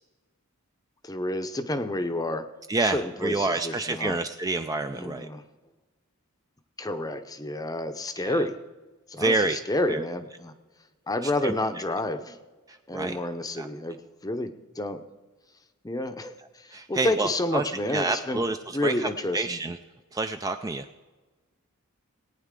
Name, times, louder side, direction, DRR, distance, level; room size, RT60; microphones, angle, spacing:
voice 1, 1.0-2.5 2.8-4.2 4.9-5.4 6.8-8.6 9.1-10.5 11.1-12.4 12.9-15.0 15.8-18.4 18.7-19.6, left 1 dB, 15° left, 9 dB, 0.7 m, -30 dB
voice 2, 2.7-5.3 8.2-8.4 9.2-9.6 9.9-10.1 11.2-11.6 12.7-13.2 13.6-13.7 16.7-19.8 20.1-20.9, right 3 dB, 15° right, 7 dB, 0.3 m, -28 dB
18.5 x 9.2 x 3.7 m, 1.2 s
head